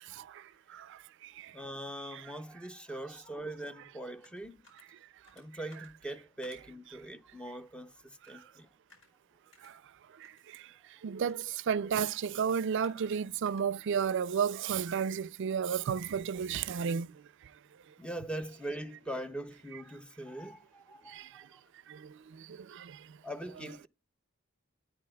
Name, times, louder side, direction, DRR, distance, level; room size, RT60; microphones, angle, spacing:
voice 1, 1.5-4.6 5.3-8.7 18.0-21.6 23.2-23.9, right 1 dB, 5° left, 0.5 m, -42 dB
sound 1, 3.6-15.3, left 2 dB, 85° left, 4.6 m, -65 dB
voice 2, 11.0-17.1 22.7-22.8, right 7 dB, 60° right, 0.4 m, -31 dB
14.0 x 9.0 x 2.2 m
head